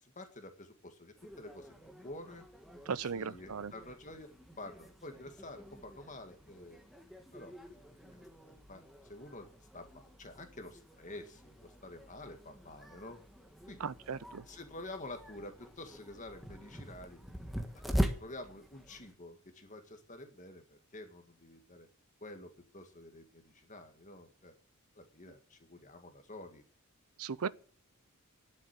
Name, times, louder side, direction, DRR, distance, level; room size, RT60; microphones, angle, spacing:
voice 1, 0.0-2.5 3.0-4.3 4.6-6.8 7.3-7.8 8.1-9.5 9.7-13.2 13.7-13.9 14.5-17.2 17.7-21.9 22.2-24.5 25.0-26.6, left 2 dB, 35° left, 1.9 m, -49 dB
sound 1, 1.2-19.1, equal, ahead, 1.5 m, -43 dB
voice 2, 2.9-3.7 13.8-14.4 27.2-27.5, right 6 dB, 85° right, 0.6 m, -37 dB
11.5 x 7.5 x 8.8 m
head